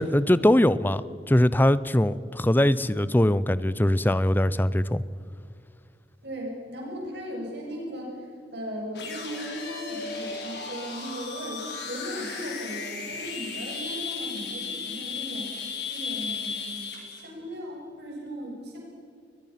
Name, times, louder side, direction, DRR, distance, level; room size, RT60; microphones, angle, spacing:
voice 1, 0.0-5.0, left 1 dB, 10° left, 17 dB, 0.5 m, -22 dB
voice 2, 6.2-8.3 8.5-15.5 15.9-18.8, equal, 70° right, -2 dB, 7.1 m, -37 dB
sound 1, 8.9-17.2, left 5 dB, 65° left, 4.5 m, -35 dB
21.5 x 21.5 x 5.8 m, 2.3 s
head